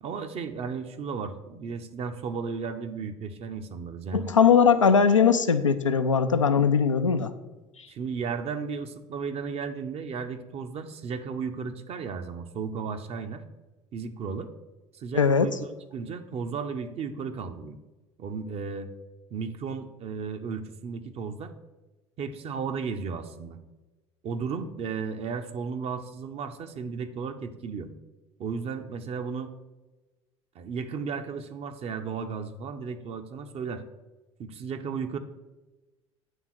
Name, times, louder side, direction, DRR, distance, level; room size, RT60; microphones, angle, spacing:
voice 1, 0.0-4.3 7.9-13.4 13.9-14.5 14.9-17.8 18.2-18.9 19.3-21.5 22.2-23.6 24.2-27.9 28.4-29.5 30.5-33.8 34.4-35.2, right 5 dB, 40° right, 8 dB, 0.7 m, -34 dB
voice 2, 4.1-7.3 15.1-15.5, left 6 dB, 90° left, 9 dB, 0.4 m, -20 dB
9.0 x 3.7 x 6.1 m, 1.1 s
figure-of-eight pair, 65°, 16 cm